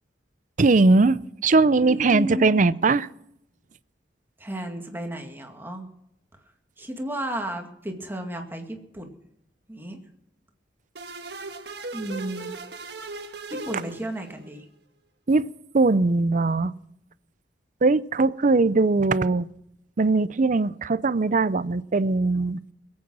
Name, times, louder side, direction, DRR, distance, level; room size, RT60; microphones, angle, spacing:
voice 1, 0.6-3.1 15.3-15.5 15.7-16.7 17.8-19.5 20.0-22.6, right 3 dB, 45° right, 0.5 m, -20 dB
voice 2, 1.7-2.6 4.4-5.9 6.3-9.2 9.7-10.0 11.9-12.5 13.5-14.7, equal, 10° right, 2.1 m, -33 dB
sound 1, 11.0-14.5, right 3 dB, 65° right, 1.5 m, -38 dB
22.0 x 8.7 x 6.1 m
head